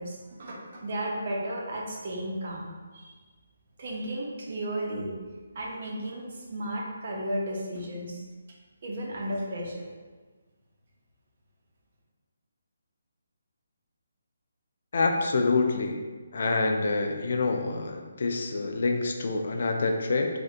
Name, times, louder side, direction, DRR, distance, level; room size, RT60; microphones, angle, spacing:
voice 1, 0.0-3.1 3.8-5.1 5.5-8.2 8.8-9.9, right 1 dB, 50° right, -2 dB, 0.7 m, -34 dB
voice 2, 14.9-16.0 16.3-20.3, left 3 dB, 55° left, 3 dB, 0.3 m, -26 dB
3.4 x 2.6 x 2.5 m, 1.4 s
hypercardioid pair, 160°, 0 cm